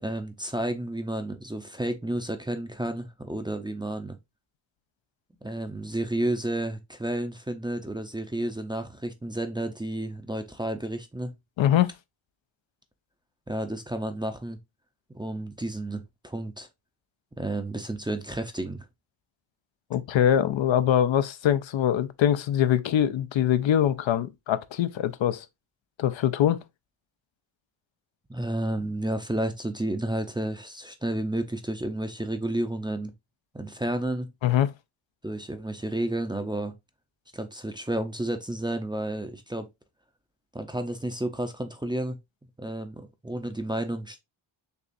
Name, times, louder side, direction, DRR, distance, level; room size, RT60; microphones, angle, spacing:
voice 1, 0.0-4.2 5.4-11.3 13.5-14.6 15.1-16.7 17.4-18.9 28.3-33.1 33.5-34.3 35.2-36.7 37.3-39.7 40.5-42.2 42.6-44.2, right 1 dB, 10° right, 0.5 m, -31 dB
voice 2, 11.6-11.9 19.9-25.5 26.0-26.6 34.4-34.7, left 10 dB, 65° left, 0.6 m, -23 dB
6.8 x 2.4 x 2.5 m
wide cardioid pair, 100°, 49 cm